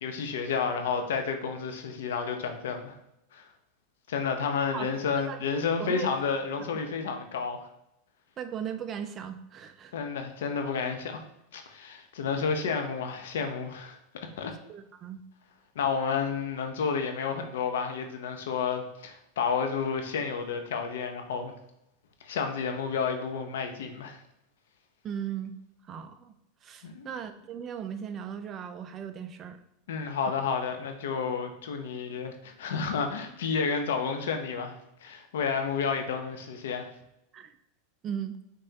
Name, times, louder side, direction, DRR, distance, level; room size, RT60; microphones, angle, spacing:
voice 1, 0.0-2.9 3.3-3.5 4.1-7.7 9.9-11.2 11.5-14.0 14.4-14.5 15.8-21.5 22.2-24.2 26.8-27.1 29.9-36.9, left 5 dB, 85° left, 6 dB, 0.7 m, -31 dB
voice 2, 5.3-6.1 8.4-10.0 14.7-15.2 25.0-25.5 25.8-26.3 26.6-29.6 37.3-37.6 38.0-38.4, right 8 dB, 30° right, 8 dB, 0.4 m, -37 dB
5.4 x 3.4 x 2.8 m, 0.83 s
supercardioid pair, 125°, 0 cm